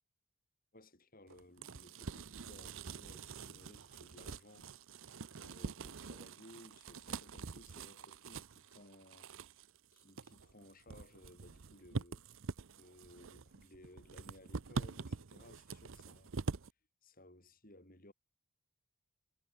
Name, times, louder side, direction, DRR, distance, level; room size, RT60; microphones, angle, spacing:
voice 1, 0.7-4.7 5.3-9.3 9.9-12.2 12.7-16.3 17.0-18.1, left 1 dB, 40° left, 5.7 m, -60 dB
sound 1, 1.3-16.7, right 4 dB, 60° right, 0.7 m, -45 dB
sound 2, 2.5-9.3, right 7 dB, 85° right, 6.0 m, -74 dB
head